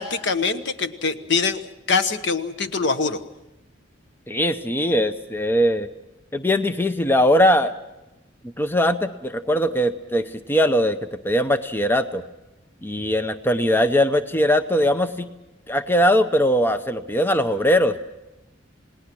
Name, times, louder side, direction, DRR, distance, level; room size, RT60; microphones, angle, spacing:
voice 1, 0.0-1.6 1.9-3.2, left 4 dB, 65° left, 10 dB, 1.2 m, -23 dB
voice 2, 4.3-5.9 6.3-7.7 8.6-11.0 11.2-12.2 12.8-15.3 15.7-18.0, equal, 10° left, 10 dB, 0.7 m, -20 dB
28.5 x 19.5 x 6.1 m, 0.98 s
head